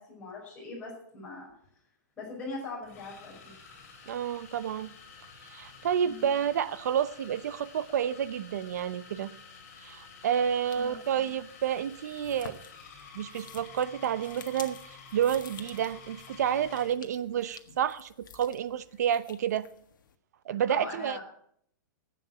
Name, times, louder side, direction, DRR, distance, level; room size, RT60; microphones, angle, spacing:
voice 1, 0.0-1.5 2.2-3.5 6.0-6.3 10.7-11.3 20.7-21.2, left 3 dB, 10° left, -5 dB, 5.5 m, -41 dB
sound 1, 1.5-1.7 2.8-17.0, left 5 dB, 45° left, 4.4 m, -51 dB
voice 2, 4.1-4.9 5.5-9.3 9.8-12.6 13.1-19.7 20.5-21.2, right 9 dB, 60° right, 16 dB, 0.8 m, -30 dB
sound 2, 10.5-20.2, left 7 dB, 85° left, 1.6 m, -52 dB
11.5 x 8.6 x 8.8 m, 0.67 s
supercardioid pair, 180°, 10 cm